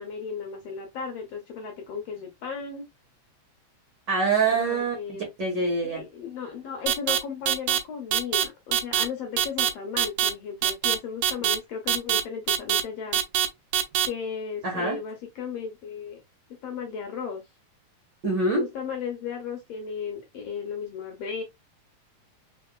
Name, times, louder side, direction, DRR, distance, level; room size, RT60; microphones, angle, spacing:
voice 1, 0.0-2.9 4.5-5.3 5.8-13.2 14.0-16.2 16.6-17.4 18.5-21.4, left 6 dB, 70° left, 1.6 m, -35 dB
voice 2, 4.1-4.9 5.4-6.0 14.6-15.0 18.2-18.6, right 3 dB, 50° right, 1.4 m, -24 dB
sound 1, 6.9-7.2 7.5-7.8 8.1-8.4 8.7-9.0 9.4-9.7 10.0-10.3 10.6-11.0 11.2-11.6 11.9-12.2 12.5-12.8 13.1-13.5 13.7-14.1, right 11 dB, 80° right, 2.1 m, -22 dB
4.2 x 4.1 x 2.2 m
omnidirectional pair, 3.6 m